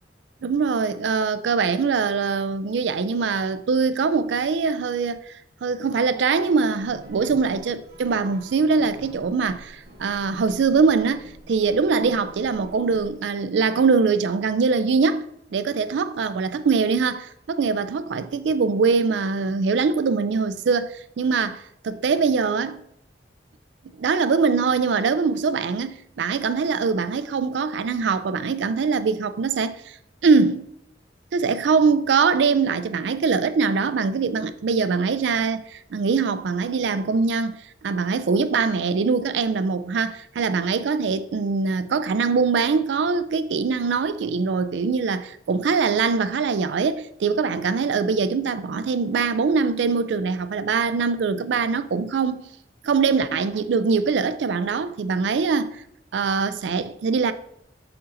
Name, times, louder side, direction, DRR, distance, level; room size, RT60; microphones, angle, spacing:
voice 1, 0.4-5.3 5.6-15.3 15.5-22.8 24.0-30.0 30.2-30.7 31.3-52.4 52.8-55.8 56.1-57.3, right 5 dB, 75° right, 0.4 m, -23 dB
sound 1, 6.7-13.1, right 1 dB, 60° right, 1.2 m, -47 dB
6.7 x 4.0 x 3.8 m
head